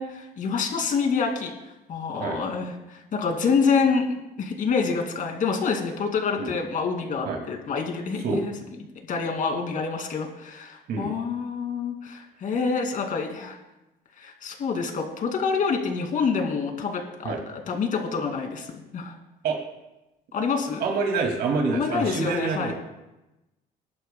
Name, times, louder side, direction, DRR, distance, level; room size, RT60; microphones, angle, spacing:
voice 1, 0.0-1.5 1.9-4.1 4.4-8.5 9.1-13.6 14.2-17.4 17.7-19.1 20.3-20.8 21.7-22.7, left 5 dB, 50° left, 3 dB, 2.4 m, -27 dB
voice 2, 20.8-22.7, right 4 dB, 70° right, 2 dB, 2.3 m, -26 dB
21.5 x 11.0 x 2.2 m, 0.98 s
cardioid pair, 110°, 17 cm